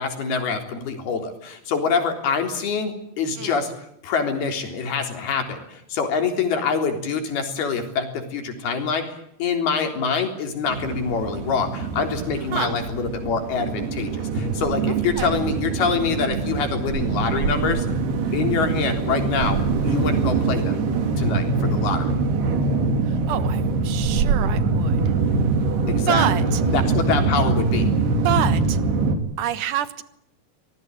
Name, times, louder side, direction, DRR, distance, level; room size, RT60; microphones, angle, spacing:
voice 1, 0.0-3.7 4.0-17.9 18.3-20.8 21.2-22.1 25.9-26.3 26.6-27.9, left 5 dB, 70° left, 5 dB, 5.6 m, -25 dB
sound 1, 10.7-29.2, right 4 dB, 80° right, 4.8 m, -23 dB
voice 2, 14.9-15.4 23.1-25.0 26.1-26.6 28.2-28.8 29.4-30.0, right 11 dB, 65° right, 13 dB, 2.5 m, -27 dB
25.0 x 20.0 x 9.2 m, 0.77 s
omnidirectional pair, 4.6 m